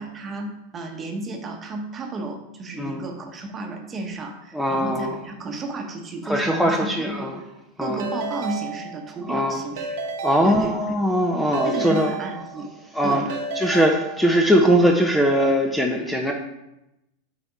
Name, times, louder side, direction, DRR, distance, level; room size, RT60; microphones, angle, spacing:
voice 1, 0.0-7.3 7.8-10.0 10.4-10.7 11.6-12.7 13.0-13.3, right 2 dB, 25° right, 3 dB, 1.3 m, -32 dB
voice 2, 4.5-5.2 6.2-7.4 7.8-8.1 9.3-9.6 10.2-12.1 12.9-13.2 13.6-16.3, equal, 5° left, 2 dB, 0.9 m, -21 dB
Keyboard (musical) / Ringtone, 8.0-9.3 9.8-11.1 11.5-12.9 13.3-14.6, right 4 dB, 60° right, 1.0 m, -33 dB
8.9 x 4.1 x 4.6 m, 0.89 s
figure-of-eight pair, 90°, 0 cm